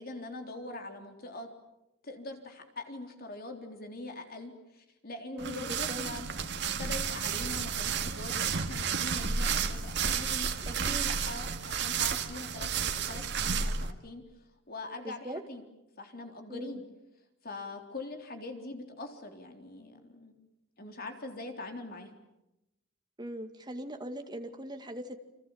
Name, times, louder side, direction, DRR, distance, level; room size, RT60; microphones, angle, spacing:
voice 1, 0.0-1.5 2.0-6.3 6.8-14.2 14.7-15.6 16.0-16.8 17.4-20.3 20.8-22.1, left 2 dB, 50° left, 4 dB, 3.8 m, -43 dB
voice 2, 5.3-6.0 10.7-11.1 15.0-15.4 16.5-16.8 23.2-25.2, equal, 20° right, 5 dB, 2.3 m, -40 dB
sound 1, 5.4-13.9, right 6 dB, 60° right, 2.0 m, -32 dB
29.5 x 26.0 x 7.4 m, 0.89 s
head